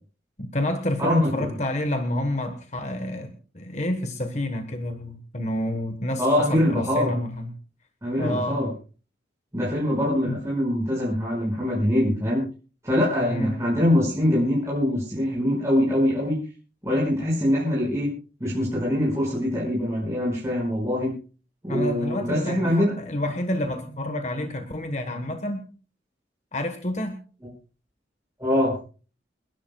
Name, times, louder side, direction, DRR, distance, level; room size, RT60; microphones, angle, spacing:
voice 1, 0.4-7.5 8.2-8.7 10.3-10.4 13.2-13.6 21.7-25.6 26.5-27.2, left 1 dB, 40° left, 6 dB, 1.3 m, -29 dB
voice 2, 1.0-1.5 6.2-7.1 8.0-8.7 9.5-12.4 12.8-16.4 16.8-18.1 18.4-21.1 21.6-22.9 28.4-28.8, left 1 dB, 15° right, -7 dB, 5.6 m, -23 dB
29.5 x 11.5 x 2.3 m, 0.37 s
head